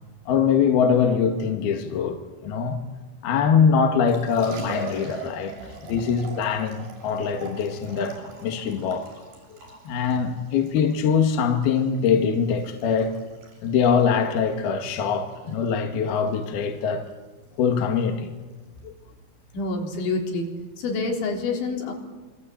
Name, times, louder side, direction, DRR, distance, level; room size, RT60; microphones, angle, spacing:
voice 1, 0.3-2.8 3.2-5.5 5.8-9.1 9.5-9.6 9.9-13.1 13.6-17.1 17.6-18.3 18.8-18.9, left 6 dB, 65° left, 3.5 m, -23 dB
Liquid, 4.1-21.2, right 4 dB, 55° right, 8.4 m, -44 dB
voice 2, 19.5-20.5 20.8-21.9, left 3 dB, 80° left, 6.2 m, -27 dB
27.5 x 24.0 x 8.7 m
omnidirectional pair, 5.2 m